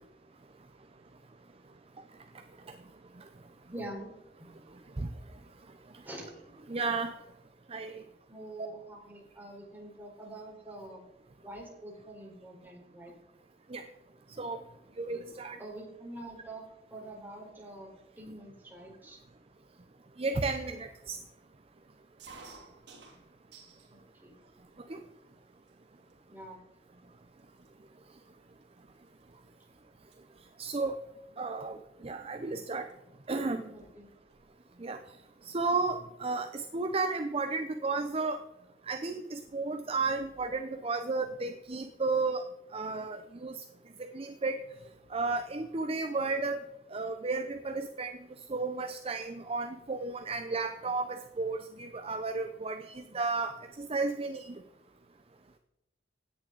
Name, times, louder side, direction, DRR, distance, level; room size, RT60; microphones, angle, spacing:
voice 1, 3.7-4.1 4.4-4.5 6.0-6.3 7.9-11.0 11.4-13.2 15.6-16.6 16.9-17.9 18.2-19.2 24.2-24.3 26.3-26.6 26.9-27.0 33.7-34.1, right 1 dB, 10° right, -2 dB, 4.2 m, -45 dB
voice 2, 6.7-7.1 7.7-8.0 8.6-8.7 13.7-13.8 14.4-14.6 15.0-15.6 20.2-21.2 24.9-25.0 30.6-31.0 31.4-32.9 33.3-33.7 34.8-35.0 35.4-38.4 38.9-42.4 42.7-43.6 44.0-44.6 45.1-46.6 46.9-48.2 48.5-54.6, right 3 dB, 35° right, 8 dB, 0.6 m, -33 dB
sound 1, 22.2-23.9 24.4-25.0 25.7-25.8 26.0-26.4 27.1-27.2 27.4-29.6 29.9-30.2 31.6-31.8 32.9-33.0 33.2-33.3 33.6-34.5, right 4 dB, 80° right, 3.0 m, -54 dB
16.5 x 10.0 x 4.0 m, 0.95 s
head